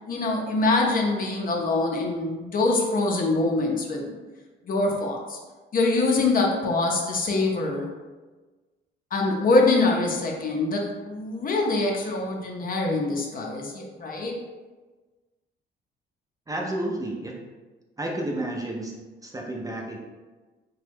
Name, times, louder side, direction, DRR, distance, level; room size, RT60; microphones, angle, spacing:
voice 1, 0.1-4.1 4.7-5.4 5.7-7.9 9.1-14.4, left 2 dB, 45° left, 0 dB, 0.6 m, -24 dB
voice 2, 16.5-17.3 18.0-18.9 19.2-20.0, right 1 dB, 15° right, -1 dB, 0.5 m, -31 dB
2.9 x 2.2 x 3.3 m, 1.3 s
cardioid pair, 90°, 20 cm